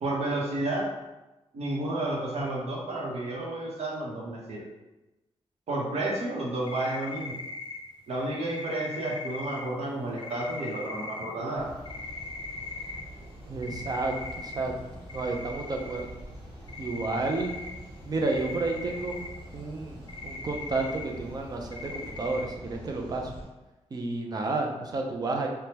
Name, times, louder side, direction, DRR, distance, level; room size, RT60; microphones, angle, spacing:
voice 1, 0.0-0.9 1.5-4.7 5.7-7.4 8.1-11.7, right 2 dB, 70° right, -4 dB, 0.9 m, -31 dB
sound 1, 6.7-7.8 8.4-9.6 10.2-11.2 11.8-13.0 13.6-14.6 15.1-16.0 16.3-16.4 16.6-17.7 18.2-19.3 20.1-21.0 21.7-22.4, left 3 dB, 45° left, 0.5 m, -39 dB
sound 2, 11.6-23.4, equal, 50° right, 1.3 m, -45 dB
voice 2, 13.5-14.7 15.1-16.1 16.8-17.5 18.1-19.2 19.5-23.3 23.9-25.5, right 3 dB, 35° right, 2 dB, 0.5 m, -31 dB
3.4 x 2.2 x 2.8 m, 1.0 s
wide cardioid pair, 135°, 11 cm